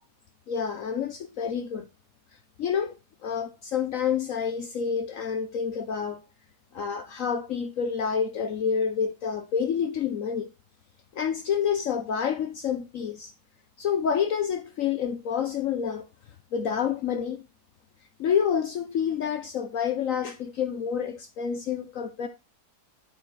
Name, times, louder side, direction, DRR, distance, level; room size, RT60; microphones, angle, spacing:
voice 1, 0.5-1.9 2.6-2.9 3.2-6.2 6.7-10.5 11.1-13.3 13.8-16.1 16.5-17.4 18.2-22.3, left 7 dB, 60° left, 1.1 m, -28 dB
11.5 x 5.0 x 4.1 m
omnidirectional pair, 1.8 m